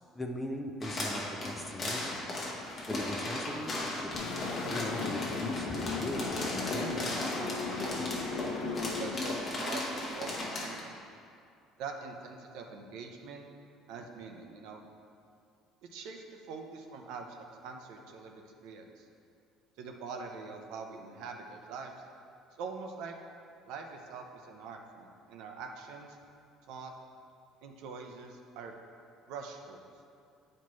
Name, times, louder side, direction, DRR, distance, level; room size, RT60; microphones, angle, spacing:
voice 1, 0.1-2.2 2.9-4.3 4.7-7.1, left 1 dB, 5° left, 2 dB, 0.4 m, -39 dB
sound 1, 0.8-10.8, left 2 dB, 25° left, 0.9 m, -37 dB
sound 2, 4.1-9.2, left 3 dB, 65° left, 0.8 m, -36 dB
voice 2, 9.0-10.9 11.8-13.5 13.9-14.8 15.8-18.3 18.6-19.1 19.8-21.9 22.6-23.2 23.7-26.2 26.7-26.9 27.6-28.8 29.3-29.8, right 5 dB, 70° right, 3 dB, 0.6 m, -44 dB
9.4 x 4.3 x 3.1 m, 2.4 s
cardioid pair, 160°, 0 cm